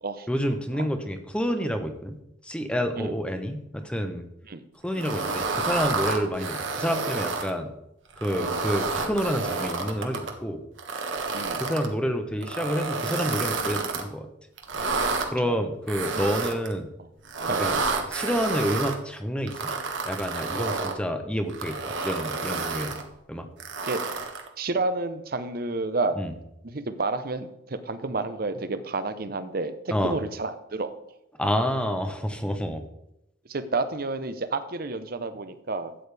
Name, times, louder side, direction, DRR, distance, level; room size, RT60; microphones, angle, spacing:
voice 1, 0.3-2.2 2.4-4.2 4.8-7.7 8.2-10.6 11.6-14.3 15.3-16.9 17.6-17.8 18.1-19.7 20.0-22.9 23.3-23.5 26.2-26.3 29.9-30.1 31.4-32.8, equal, 5° left, 6 dB, 0.9 m, -28 dB
sound 1, 4.9-7.5 8.1-10.3 10.8-11.9 12.4-14.0 14.6-15.3 15.9-16.7 17.2-18.9 19.5-21.0 21.5-23.0 23.6-24.5, right 4 dB, 75° right, 1.3 m, -30 dB
voice 2, 24.6-26.2 26.6-30.9 33.5-35.9, right 3 dB, 50° right, 11 dB, 0.8 m, -30 dB
12.5 x 8.6 x 3.4 m, 0.84 s
head